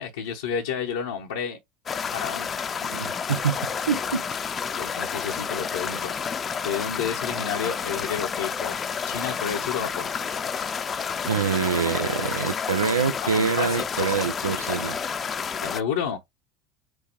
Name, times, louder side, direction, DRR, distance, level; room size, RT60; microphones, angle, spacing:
voice 1, 0.0-1.6 2.1-2.5 4.8-6.2 6.6-8.7 9.1-10.1 13.2-14.2 15.6-16.2, left 7 dB, 75° left, 0.8 m, -30 dB
sound 1, 1.9-15.8, left 6 dB, 35° left, 0.6 m, -30 dB
voice 2, 2.8-3.6 3.9-4.2 11.3-15.0, right 6 dB, 85° right, 0.5 m, -25 dB
6.2 x 2.3 x 3.0 m
hypercardioid pair, 70°, 0 cm